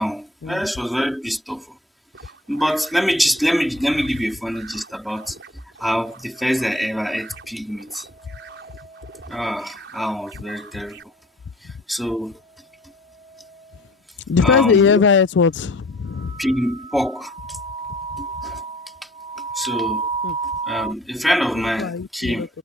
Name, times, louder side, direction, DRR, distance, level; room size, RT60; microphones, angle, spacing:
voice 1, 0.0-1.8 2.5-5.4 5.8-8.1 9.3-11.1 11.6-12.4 14.4-15.0 16.4-17.6 18.2-18.6 19.5-20.1 20.7-22.5, equal, ahead, 3.1 m, -24 dB
sound 1, 2.1-11.0, right 5 dB, 70° right, 4.4 m, -44 dB
sound 2, 6.2-7.5 8.0-9.7 10.1-11.2 12.3-14.0 14.6-14.7 15.6-15.8 16.1-20.9, right 4 dB, 30° right, 7.1 m, -33 dB
voice 2, 14.3-16.4 20.2-20.4 21.8-22.5, left 6 dB, 75° left, 0.4 m, -18 dB
head